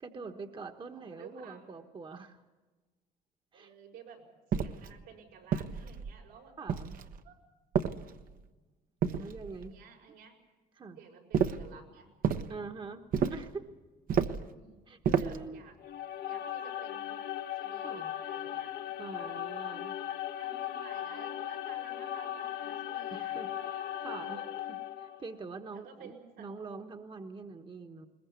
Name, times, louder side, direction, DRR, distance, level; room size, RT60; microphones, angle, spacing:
voice 1, 0.0-2.4 3.5-3.7 6.6-7.0 9.1-9.8 10.8-11.0 12.5-13.0 13.3-13.6 14.9-15.6 17.8-18.1 19.0-19.9 23.1-24.4 24.7-26.1 26.4-28.1, right 4 dB, 30° right, 6 dB, 1.3 m, -44 dB
voice 2, 0.9-1.7 3.5-4.3 4.5-6.5 7.2-7.4 9.7-10.3 10.9-12.1 14.5-15.8 16.3-17.2 17.5-19.8 20.3-23.4 23.8-24.4 25.7-26.5, right 6 dB, 85° right, 1 dB, 6.6 m, -53 dB
sound 1, 4.5-4.9 5.5-6.2 6.7-7.2 7.7-8.4 9.0-9.7 11.3-11.7 12.2-12.5 13.1-13.5 14.1-14.5 15.0-15.5, right 7 dB, 55° right, 1.1 m, -31 dB
sound 2, 15.8-25.3, left 11 dB, 65° left, 1.3 m, -38 dB
21.0 x 21.0 x 8.4 m, 1.2 s
cardioid pair, 110°, 17 cm